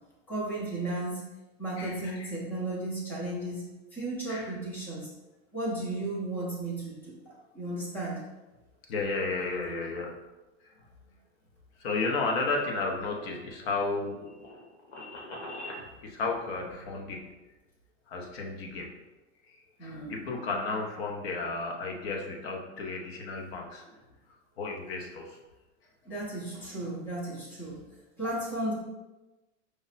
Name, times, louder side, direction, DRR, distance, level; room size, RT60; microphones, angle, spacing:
voice 1, 0.3-1.3 1.6-5.1 5.5-8.2 19.8-20.2 23.9-24.0 26.0-27.8 28.2-28.7, right 2 dB, 5° left, -4 dB, 0.4 m, -34 dB
voice 2, 1.8-2.3 4.3-4.5 8.9-10.1 11.8-14.3 16.0-17.2 18.1-18.9 19.8-23.8 24.6-25.4, left 3 dB, 60° left, 1 dB, 0.9 m, -33 dB
sound 1, 13.1-15.8, left 1 dB, 90° left, 1.3 m, -44 dB
4.9 x 2.1 x 4.1 m, 1.1 s
supercardioid pair, 170°, 34 cm